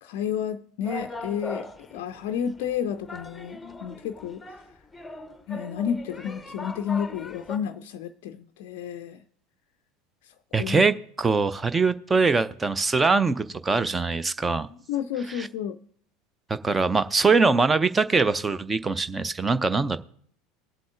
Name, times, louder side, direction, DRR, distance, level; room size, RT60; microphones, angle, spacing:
voice 1, 0.0-4.6 5.5-9.2 10.2-10.9 14.9-15.8, left 8 dB, 55° left, 0.4 m, -31 dB
sound 1, 0.8-7.6, left 2 dB, 10° left, 0.8 m, -40 dB
voice 2, 10.5-14.7 15.3-15.5 16.5-20.0, right 4 dB, 15° right, 0.5 m, -23 dB
22.5 x 7.6 x 2.5 m
figure-of-eight pair, 75°, 0 cm